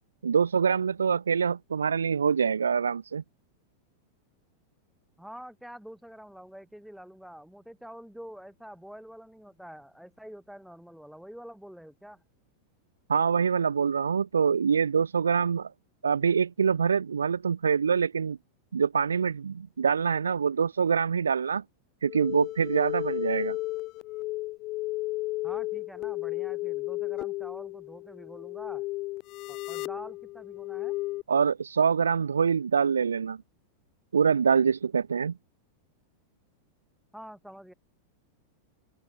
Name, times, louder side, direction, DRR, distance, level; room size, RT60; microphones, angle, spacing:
voice 1, 0.2-3.2 13.1-15.7 16.0-18.4 18.7-21.6 22.0-23.6 31.3-33.4 34.1-35.4, right 6 dB, 70° right, 0.5 m, -25 dB
voice 2, 5.2-12.2 25.4-28.8 29.5-31.0 37.1-37.7, equal, ahead, 7.9 m, -46 dB
sound 1, 22.0-31.2, left 19 dB, 40° left, 0.3 m, -34 dB
open air
figure-of-eight pair, 90°, 0 cm